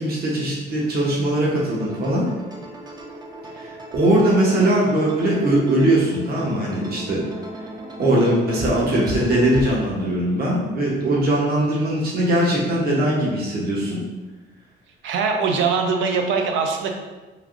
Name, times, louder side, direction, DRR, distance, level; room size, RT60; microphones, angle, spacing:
voice 1, 0.0-2.3 3.5-7.3 8.0-14.0, right 1 dB, 50° right, -5 dB, 0.8 m, -20 dB
sound 1, 1.4-9.8, right 1 dB, 20° right, 0.4 m, -36 dB
voice 2, 15.0-16.9, right 5 dB, 75° right, 3 dB, 0.5 m, -22 dB
3.2 x 2.5 x 2.4 m, 1.2 s
cardioid pair, 90°, 20 cm